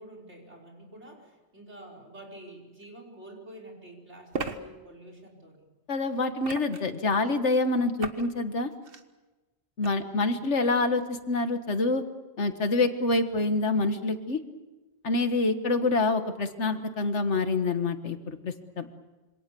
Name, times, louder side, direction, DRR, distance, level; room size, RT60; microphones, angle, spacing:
voice 1, 0.0-5.6 9.8-10.4, right 1 dB, 80° right, 2 dB, 5.6 m, -48 dB
sound 1, 2.8-2.9 4.3-4.6 6.4-7.0 8.0-8.3 8.7-9.0 9.8-9.9, right 4 dB, 55° right, 1.6 m, -35 dB
voice 2, 5.9-8.7 9.8-12.0 12.4-14.4 15.0-18.9, left 3 dB, 85° left, 8 dB, 1.9 m, -26 dB
27.0 x 25.5 x 7.0 m, 1.2 s
omnidirectional pair, 1.2 m